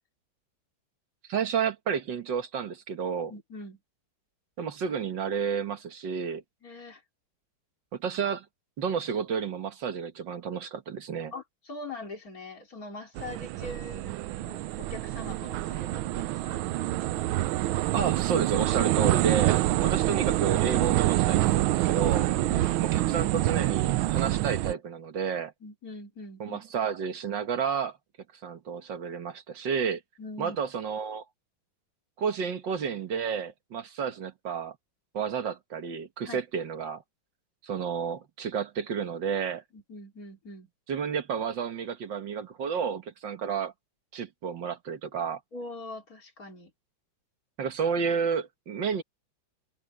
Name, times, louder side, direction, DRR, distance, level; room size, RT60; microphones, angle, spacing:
voice 1, 1.3-3.3 4.6-6.4 7.9-8.5 8.8-11.3 17.9-22.3 22.8-25.5 26.4-28.0 28.4-30.0 30.4-31.2 32.2-34.8 35.1-37.0 37.6-39.6 40.9-43.7 44.1-45.4 47.6-49.0, right 6 dB, 65° right, 2.1 m, -31 dB
voice 2, 3.3-3.8 6.6-7.0 11.3-16.6 19.1-19.2 19.6-19.9 22.3-22.8 25.6-26.6 30.2-30.6 36.3-36.4 39.7-40.7 45.5-46.7, left 2 dB, 45° left, 3.2 m, -43 dB
sound 1, 13.2-24.7, right 15 dB, 85° right, 1.4 m, -26 dB
omnidirectional pair, 2.2 m